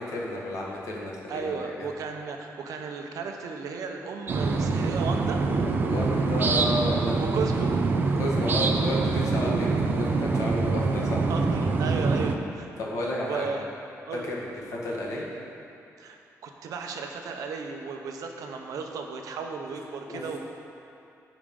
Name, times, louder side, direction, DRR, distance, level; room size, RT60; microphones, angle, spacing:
voice 1, 0.0-1.9 5.9-7.5 8.1-11.2 12.8-13.5 14.3-15.3 20.1-20.2, left 1 dB, 60° left, -3 dB, 1.5 m, -32 dB
voice 2, 1.3-5.4 7.2-7.7 11.3-12.7 13.2-13.6 14.1-14.3 16.0-20.4, right 5 dB, 75° right, 3 dB, 0.8 m, -35 dB
sound 1, 4.3-12.4, right 4 dB, 35° right, 0.5 m, -25 dB
15.0 x 5.1 x 3.7 m, 2.7 s
wide cardioid pair, 180°, 6 cm